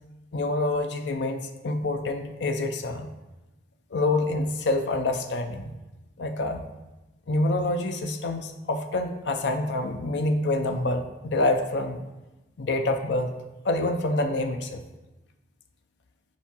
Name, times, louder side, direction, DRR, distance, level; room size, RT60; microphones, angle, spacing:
voice 1, 0.3-3.1 3.9-5.7 6.2-6.7 7.3-12.0 12.6-13.3 13.6-14.8, left 2 dB, 80° left, 6 dB, 0.5 m, -27 dB
5.0 x 4.5 x 5.3 m, 1.1 s
head